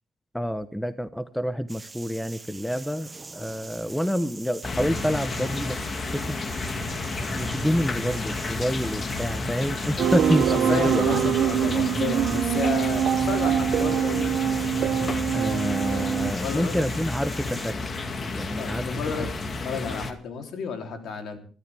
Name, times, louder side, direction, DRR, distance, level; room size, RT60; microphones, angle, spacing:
voice 1, 0.3-6.4 7.3-11.2 15.3-17.9 18.3-18.9 19.2-19.3, equal, 5° left, 13 dB, 1.0 m, -28 dB
sound 1, 1.7-17.7, right 3 dB, 25° right, 0.9 m, -43 dB
sound 2, 4.6-20.1, left 3 dB, 40° left, 2.0 m, -31 dB
sound 3, 10.0-16.3, right 9 dB, 70° right, 0.7 m, -24 dB
voice 2, 10.5-14.3 16.3-16.8 18.6-21.4, left 6 dB, 70° left, 5 dB, 3.3 m, -32 dB
24.5 x 12.5 x 3.5 m, 0.37 s
cardioid pair, 90°, 0 cm